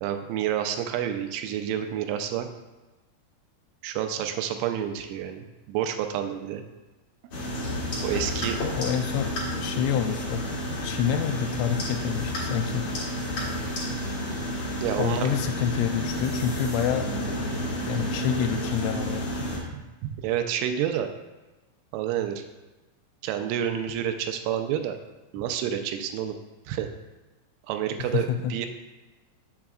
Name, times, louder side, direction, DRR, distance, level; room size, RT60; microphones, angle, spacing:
voice 1, 0.0-2.5 3.8-6.6 8.0-8.6 14.8-15.3 19.7-21.1 21.9-22.4 23.2-25.0 25.3-26.4 26.7-26.9 27.7-28.7, right 10 dB, 90° right, 6 dB, 3.0 m, -29 dB
sound 1, 7.3-19.6, equal, 65° left, 1.7 m, -31 dB
voice 2, 8.7-9.3 9.6-10.4 10.8-12.9 15.0-17.3 17.8-19.3 28.1-28.5, left 9 dB, 85° left, 5 dB, 2.9 m, -27 dB
7.5 x 6.9 x 2.4 m, 1.1 s
omnidirectional pair, 5.4 m